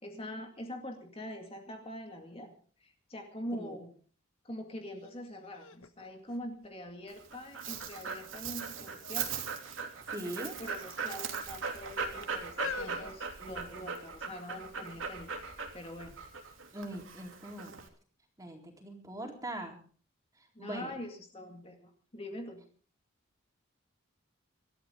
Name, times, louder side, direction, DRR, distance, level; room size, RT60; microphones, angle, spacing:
voice 1, 0.0-3.9 4.4-9.3 10.2-15.3 15.7-16.2 20.5-22.6, left 1 dB, 30° left, 3 dB, 2.2 m, -44 dB
sound 1, 5.0-5.1 5.5-7.1 7.7-8.2 9.0-9.4 9.6-9.8 10.7-11.3 12.0-14.1 14.8-14.9, left 5 dB, 90° left, 1.5 m, -44 dB
Dog, 7.1-17.9, right 5 dB, 75° right, 3.0 m, -39 dB
voice 2, 10.0-10.6 16.7-17.8 18.4-19.8 20.4-21.0, right 1 dB, 15° right, 1 dB, 4.0 m, -42 dB
25.5 x 13.0 x 3.8 m, 0.42 s
head